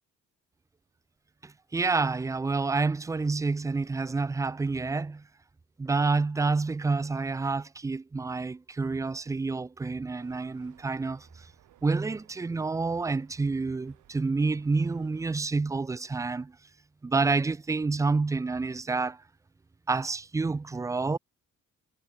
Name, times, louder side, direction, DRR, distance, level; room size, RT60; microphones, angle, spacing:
voice 1, 1.4-5.2 5.8-11.3 11.8-16.5 17.0-19.2 19.9-21.2, right 3 dB, 10° right, 0.3 m, -28 dB
sound 1, 10.1-15.3, right 13 dB, 85° right, 7.1 m, -61 dB
cardioid pair, 90°, 30 cm